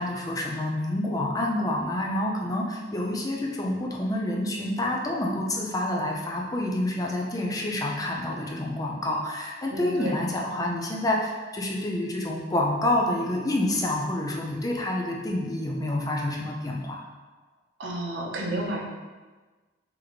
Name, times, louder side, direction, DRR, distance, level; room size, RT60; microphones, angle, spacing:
voice 1, 0.0-17.0, left 1 dB, 20° left, -1 dB, 0.5 m, -28 dB
voice 2, 9.7-10.2 17.8-18.8, right 1 dB, 80° right, -1 dB, 0.7 m, -31 dB
3.9 x 3.0 x 3.1 m, 1.3 s
head